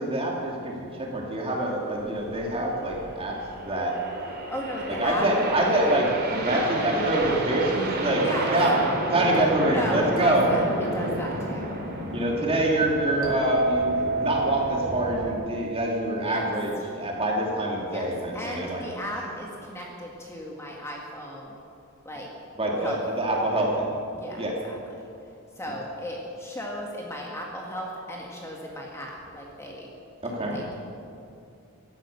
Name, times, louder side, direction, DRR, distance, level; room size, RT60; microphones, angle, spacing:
voice 1, 0.0-3.9 5.0-8.7 9.1-10.6 12.1-18.8 22.6-23.9 24.4-24.5 30.2-30.6, right 1 dB, 25° right, -2 dB, 2.8 m, -25 dB
sound 1, 2.0-15.3, right 1 dB, 45° right, 3.0 m, -31 dB
voice 2, 4.5-5.3 8.2-8.5 9.2-9.3 9.6-11.7 16.2-16.5 17.9-21.6 22.0-22.3 22.8-23.0 24.1-25.1 25.6-29.9 30.5-30.7, equal, 10° left, -2 dB, 1.7 m, -35 dB
sound 2, 13.2-16.9, right 2 dB, 70° right, 2.8 m, -29 dB
16.5 x 12.5 x 6.8 m, 2.5 s
head